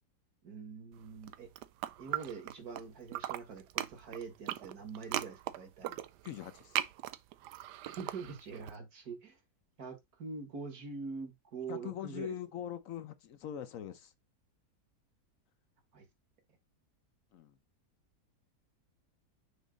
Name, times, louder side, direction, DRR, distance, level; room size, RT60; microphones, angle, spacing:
voice 1, 0.4-1.5 2.0-6.0 7.8-9.4 9.8-12.4 15.9-16.1, right 5 dB, 65° right, 2.0 m, -44 dB
sound 1, 1.2-2.8 3.1-8.7, right 13 dB, 85° right, 1.2 m, -39 dB
voice 2, 6.2-6.8 11.7-14.1 17.3-17.6, left 10 dB, 65° left, 1.0 m, -42 dB
6.3 x 3.0 x 5.1 m
omnidirectional pair, 1.7 m